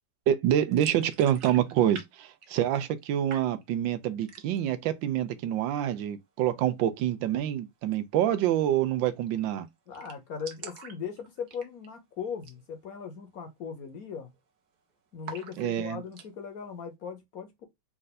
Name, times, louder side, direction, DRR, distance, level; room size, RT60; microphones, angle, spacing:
voice 1, 0.3-9.7 15.6-16.0, right 11 dB, 80° right, 1.3 m, -27 dB
sound 1, 0.7-2.1 2.3-3.0 3.3-3.9 4.2-4.7 5.1-5.2 5.5-6.1 7.8-8.0 8.3-8.4 8.6-8.7 9.1-9.4 9.7-9.8 9.9-12.0 12.4-12.6 13.0-13.1 13.6-13.9 14.1-14.8 15.2-16.3, right 6 dB, 60° right, 1.3 m, -46 dB
voice 2, 9.9-14.3 15.1-17.7, left 6 dB, 55° left, 1.2 m, -39 dB
4.4 x 2.5 x 4.0 m
omnidirectional pair, 2.1 m